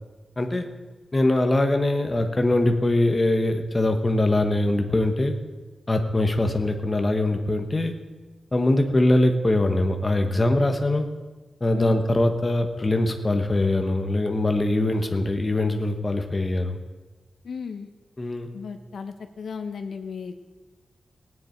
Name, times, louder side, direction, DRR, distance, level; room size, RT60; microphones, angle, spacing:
voice 1, 1.1-5.3 5.9-7.9 8.5-11.1 11.6-16.8 18.2-18.5, left 1 dB, 20° left, 5 dB, 1.0 m, -22 dB
voice 2, 17.4-17.9 18.5-20.4, left 5 dB, 75° left, 7 dB, 1.0 m, -35 dB
17.5 x 9.6 x 4.5 m, 1.2 s
wide cardioid pair, 170°, 0 cm